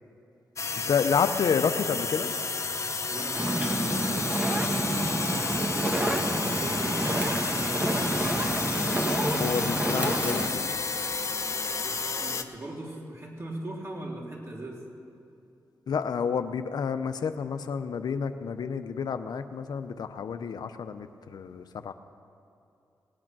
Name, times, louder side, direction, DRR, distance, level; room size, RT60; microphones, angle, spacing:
sound 1, 0.6-12.4, left 4 dB, 45° left, 0.9 m, -31 dB
voice 1, 0.9-2.3 9.4-10.7 15.9-21.9, left 6 dB, 75° left, 9 dB, 0.6 m, -29 dB
voice 2, 3.1-8.8 11.6-14.8, right 1 dB, 40° right, -2 dB, 3.2 m, -40 dB
Fire, 3.3-10.5, right 1 dB, 20° right, 1.6 m, -28 dB
18.0 x 8.7 x 6.0 m, 2.7 s
cardioid pair, 55°, 7 cm